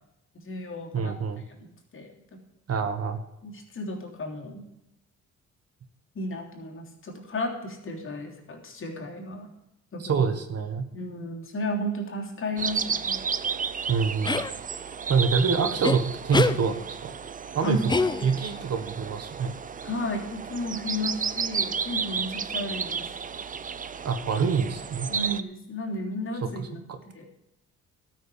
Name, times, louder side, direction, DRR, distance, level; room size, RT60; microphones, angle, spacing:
voice 1, 0.4-1.1 1.6-1.7 1.9-2.1 3.4-4.6 6.1-9.5 9.9-10.2 10.9-13.2 17.6-17.9 19.8-23.0 25.1-26.8 27.1-27.3, left 1 dB, 45° left, 0 dB, 3.3 m, -33 dB
voice 2, 0.9-1.4 2.7-3.2 10.0-10.8 13.9-14.4 15.1-17.1 17.5-19.5 24.0-25.1 26.6-27.0, right 5 dB, 55° right, 8 dB, 1.6 m, -26 dB
sound 1, 12.6-25.4, right 6 dB, 25° right, 0.6 m, -32 dB
sound 2, 14.2-14.5 15.8-16.0 16.3-16.6 17.9-18.5, left 3 dB, 15° left, 0.7 m, -24 dB
12.5 x 6.4 x 8.5 m, 0.86 s
cardioid pair, 90°, 30 cm